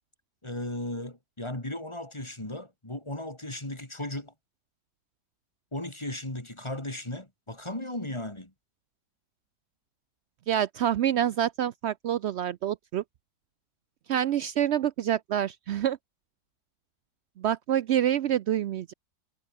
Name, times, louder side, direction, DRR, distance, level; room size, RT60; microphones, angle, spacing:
voice 1, 0.4-4.3 5.7-8.5, left 1 dB, 15° left, 3.1 m, -36 dB
voice 2, 10.5-13.0 14.1-16.0 17.4-18.9, right 10 dB, 85° right, 0.6 m, -27 dB
omnidirectional pair, 1.8 m